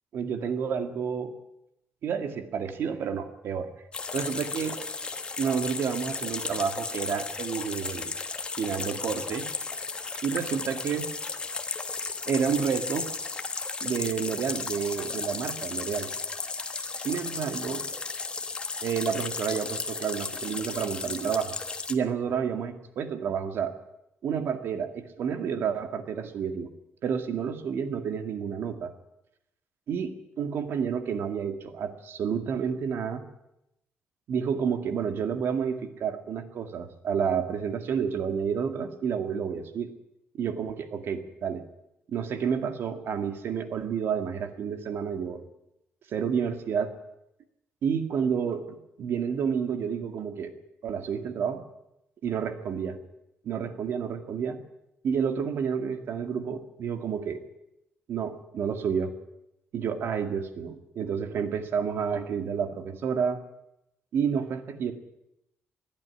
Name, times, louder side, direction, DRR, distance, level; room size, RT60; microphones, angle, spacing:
voice 1, 0.1-1.3 2.0-3.7 4.1-4.8 5.4-8.1 8.6-9.5 10.2-11.1 12.3-13.1 13.8-16.1 16.8-17.9 18.8-21.5 21.9-23.7 24.2-26.7 27.0-28.9 29.9-33.2 34.3-39.9 40.3-41.6 42.1-45.4 46.1-46.9 47.8-50.5 50.8-51.6 52.2-53.0 53.4-54.6 55.0-57.4 58.1-59.1 59.7-63.4 64.1-64.9, right 7 dB, 65° right, 8 dB, 2.1 m, -30 dB
sound 1, 3.9-21.9, left 4 dB, 25° left, 1.3 m, -34 dB
21.5 x 12.0 x 10.0 m, 0.86 s
wide cardioid pair, 180°, 4 cm